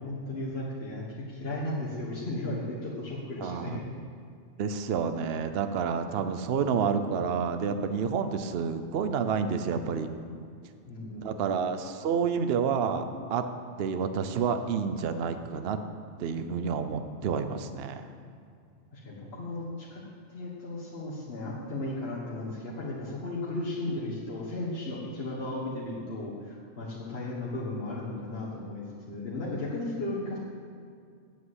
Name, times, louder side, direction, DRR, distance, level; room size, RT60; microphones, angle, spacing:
voice 1, 0.0-3.8 10.9-11.5 18.9-20.0 20.3-30.4, left 2 dB, 55° left, -6 dB, 1.7 m, -35 dB
voice 2, 3.4-3.8 4.6-10.1 11.2-13.0 13.3-13.4 13.8-15.8 16.2-18.1, right 6 dB, 60° right, 9 dB, 0.9 m, -29 dB
8.3 x 7.8 x 8.0 m, 2.3 s
omnidirectional pair, 1.2 m